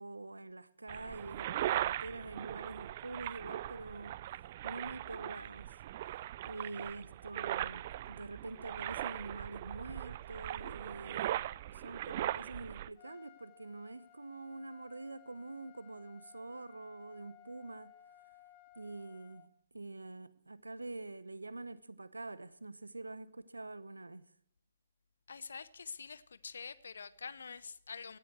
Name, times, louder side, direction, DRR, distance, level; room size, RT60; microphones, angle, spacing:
voice 1, 0.0-4.2 4.6-5.7 6.4-17.9 18.8-24.3, right 2 dB, 80° right, 0.9 m, -46 dB
sound 1, 0.9-12.9, right 13 dB, 40° right, 0.4 m, -39 dB
Trumpet, 13.0-19.5, left 13 dB, 35° left, 1.2 m, -60 dB
voice 2, 25.3-28.2, left 5 dB, 65° left, 0.8 m, -46 dB
17.5 x 12.5 x 3.1 m
figure-of-eight pair, 125°, 0 cm